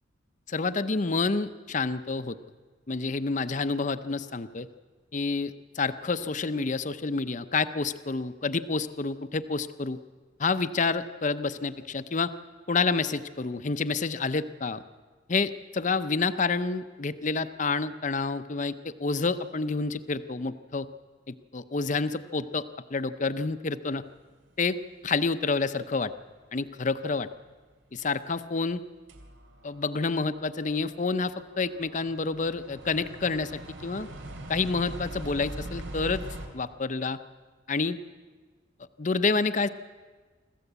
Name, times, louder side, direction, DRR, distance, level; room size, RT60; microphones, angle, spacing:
voice 1, 0.5-2.4 2.9-4.7 5.1-10.0 10.4-12.3 12.7-14.8 15.3-20.9 21.3-22.6 22.9-24.0 24.6-24.8 25.0-26.1 26.5-27.3 27.9-28.8 29.6-34.1 34.5-36.2 36.5-37.2 37.7-38.0 39.0-39.7, left 4 dB, 40° left, 12 dB, 0.7 m, -28 dB
sound 1, 28.0-28.1 28.7-28.8 29.1-36.5, right 1 dB, 90° right, 3.0 m, -42 dB
25.5 x 14.5 x 8.1 m, 1.4 s
head